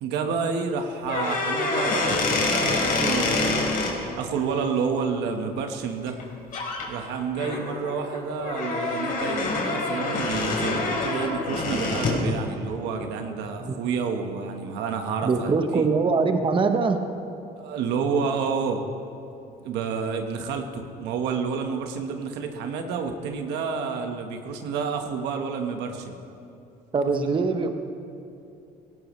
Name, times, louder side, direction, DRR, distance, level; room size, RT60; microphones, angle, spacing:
voice 1, 0.0-3.7 4.1-6.2 6.9-15.5 15.7-15.9 17.6-18.8 19.6-26.1, right 5 dB, 90° right, 4 dB, 1.4 m, -29 dB
sound 1, 1.0-3.9 6.1-6.2 6.5-6.8 7.3-12.3, left 3 dB, 55° left, 3.4 m, -26 dB
voice 2, 15.2-17.0 26.9-27.8, right 4 dB, 30° right, 6 dB, 1.0 m, -23 dB
17.5 x 17.5 x 3.2 m, 2.6 s
cardioid pair, 110°, 17 cm